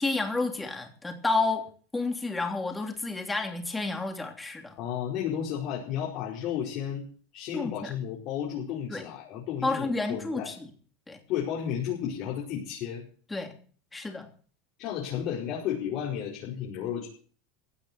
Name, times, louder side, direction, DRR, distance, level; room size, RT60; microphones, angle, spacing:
voice 1, 0.0-4.7 7.5-7.9 8.9-9.0 9.6-10.5 11.1-11.2 13.3-13.5 13.9-14.3, left 3 dB, 10° left, 3.1 m, -30 dB
voice 2, 4.8-7.1 7.3-10.5 11.3-13.1 14.8-17.1, left 9 dB, 55° left, 5.1 m, -33 dB
16.5 x 7.7 x 8.2 m
supercardioid pair, 120°, 0 cm